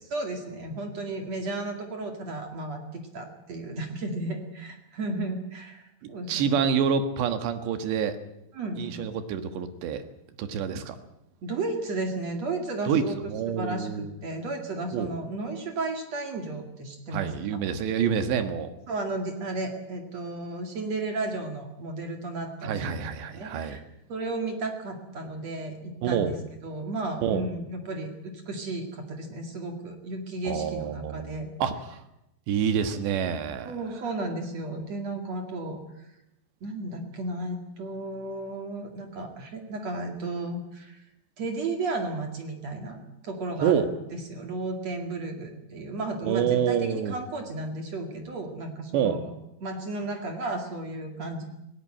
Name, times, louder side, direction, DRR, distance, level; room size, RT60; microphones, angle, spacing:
voice 1, 0.1-6.6 8.5-8.8 11.4-13.9 14.2-17.3 18.9-23.8 24.1-31.5 33.7-35.8 36.6-41.0 41.4-43.0 43.2-43.8 44.1-49.3 49.6-51.4, right 2 dB, 45° right, 4 dB, 2.8 m, -34 dB
voice 2, 6.3-8.2 8.8-10.0 10.4-11.0 12.9-14.1 14.9-15.1 17.1-18.7 22.6-23.8 26.0-26.3 27.2-27.4 30.5-32.0 32.5-33.8 43.6-43.9 46.2-47.2 48.9-49.2, right 7 dB, 75° right, 9 dB, 3.7 m, -27 dB
18.5 x 18.0 x 8.9 m, 0.88 s
omnidirectional pair, 5.1 m